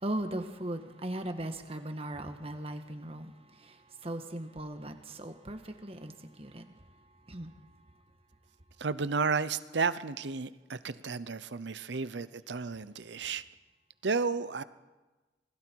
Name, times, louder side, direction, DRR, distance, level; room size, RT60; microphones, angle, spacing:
voice 1, 0.0-6.8 7.3-7.5, right 1 dB, 35° right, 1.6 m, -38 dB
voice 2, 8.8-13.4 14.0-14.6, right 4 dB, 75° right, 0.7 m, -32 dB
27.0 x 20.5 x 4.6 m
head